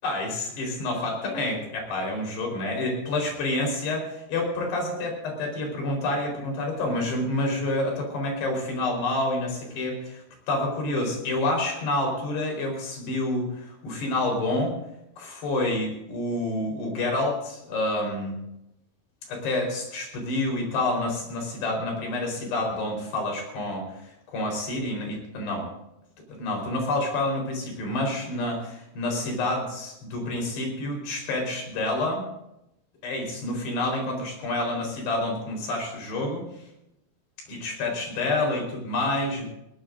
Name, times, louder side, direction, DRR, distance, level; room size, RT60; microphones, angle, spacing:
voice 1, 0.0-14.8 15.2-18.3 19.3-25.7 26.3-32.2 33.0-36.5 37.5-39.5, left 2 dB, 85° left, 1 dB, 6.5 m, -28 dB
21.0 x 19.5 x 2.6 m, 0.83 s
omnidirectional pair, 4.6 m